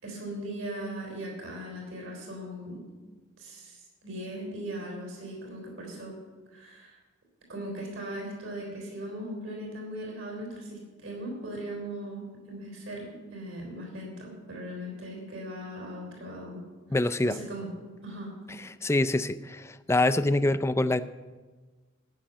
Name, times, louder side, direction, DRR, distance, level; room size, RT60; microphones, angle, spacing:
voice 1, 0.0-2.8 3.4-6.2 6.5-7.0 7.5-16.6 16.9-17.7 18.0-18.3, right 1 dB, 70° right, 0 dB, 3.7 m, -39 dB
voice 2, 16.9-17.4 18.6-21.0, left 2 dB, 15° left, 11 dB, 0.4 m, -25 dB
14.5 x 6.4 x 9.0 m, 1.3 s
head